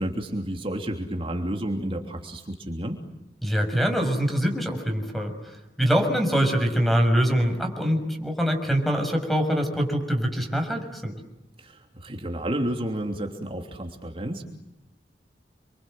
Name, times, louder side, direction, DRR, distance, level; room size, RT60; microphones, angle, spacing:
voice 1, 0.0-3.0 11.6-14.4, right 1 dB, 30° right, 3 dB, 3.1 m, -31 dB
voice 2, 3.4-5.3 5.8-11.1, equal, ahead, 5 dB, 6.2 m, -24 dB
29.5 x 25.5 x 7.9 m, 0.92 s
head